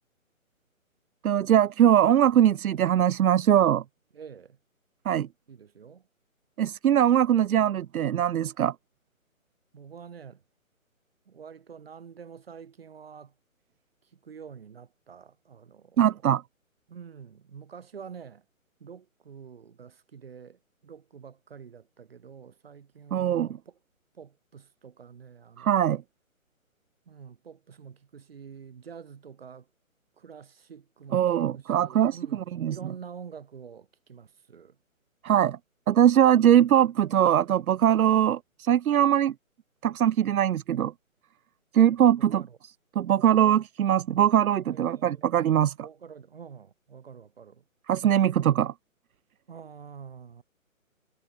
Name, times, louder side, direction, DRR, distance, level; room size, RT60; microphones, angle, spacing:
voice 1, 1.2-3.8 5.1-5.3 6.6-8.7 16.0-16.4 23.1-23.5 25.6-26.0 31.1-32.8 35.2-35.6 35.9-39.3 39.8-40.9 41.7-42.4 43.0-45.7 47.9-48.7, right 10 dB, 85° right, 0.5 m, -21 dB
voice 2, 4.1-4.6 5.5-6.1 9.7-10.4 11.3-13.3 14.1-16.0 16.9-18.4 18.8-23.8 24.1-25.9 27.1-29.7 30.2-31.2 31.5-34.8 42.1-42.6 44.7-45.3 45.8-47.6 49.5-50.4, right 7 dB, 45° right, 5.6 m, -47 dB
hypercardioid pair, 165°, 42 cm